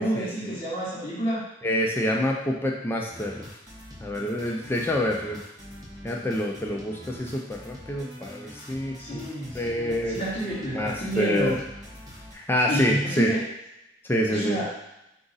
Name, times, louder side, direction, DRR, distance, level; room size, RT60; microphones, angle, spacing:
voice 1, 0.0-1.5 9.0-11.6 12.7-13.4 14.3-14.7, right 1 dB, 30° left, -10 dB, 1.0 m, -29 dB
voice 2, 1.6-3.5 4.0-5.4 6.0-9.2 9.5-10.2 10.7-11.6 12.3-13.3 14.0-14.6, left 1 dB, 10° left, -1 dB, 0.4 m, -27 dB
sound 1, 3.1-12.3, equal, 20° right, 1.0 m, -44 dB
4.9 x 2.4 x 3.9 m, 0.89 s
head